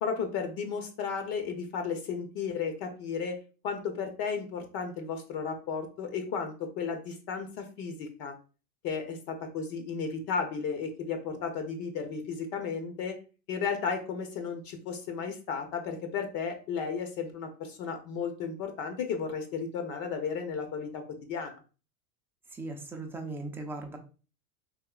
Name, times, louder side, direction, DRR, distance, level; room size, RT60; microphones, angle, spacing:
voice 1, 0.0-3.4 3.6-8.3 8.8-13.2 13.5-21.0 21.3-21.6, left 6 dB, 50° left, 6 dB, 0.7 m, -34 dB
voice 2, 22.5-24.0, right 2 dB, 5° right, 2 dB, 0.3 m, -38 dB
3.6 x 2.6 x 2.3 m, 0.35 s
hypercardioid pair, 100°, 43 cm